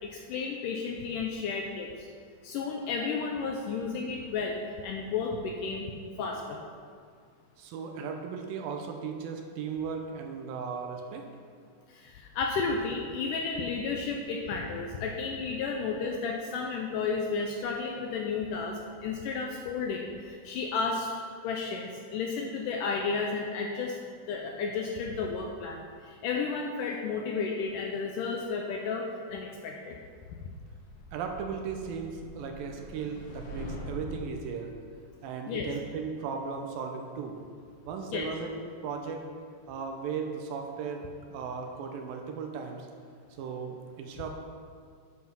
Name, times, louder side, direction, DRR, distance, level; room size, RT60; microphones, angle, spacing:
voice 1, 0.0-2.1 2.4-5.9 6.2-6.6 11.9-24.0 24.3-30.0 30.4-30.5 35.5-35.7 38.1-38.3, left 4 dB, 85° left, 1 dB, 1.9 m, -33 dB
voice 2, 7.6-11.2 31.1-34.7 35.2-37.4 37.9-38.5 38.8-39.3 39.7-42.9 43.4-44.3, right 5 dB, 80° right, 3 dB, 2.5 m, -36 dB
sound 1, 30.9-34.4, equal, 65° left, 2.5 m, -43 dB
9.5 x 5.8 x 5.7 m, 2.1 s
omnidirectional pair, 4.3 m